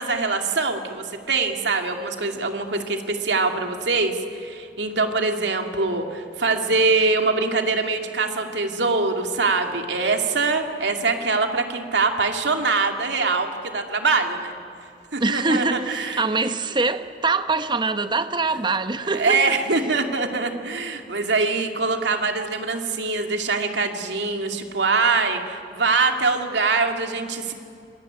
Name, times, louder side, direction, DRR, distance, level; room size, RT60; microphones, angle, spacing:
voice 1, 0.0-14.5 15.1-16.2 19.1-27.5, right 4 dB, 90° right, 2.6 m, -23 dB
voice 2, 15.2-19.6, right 3 dB, 25° right, 1.0 m, -24 dB
25.5 x 22.5 x 9.6 m
head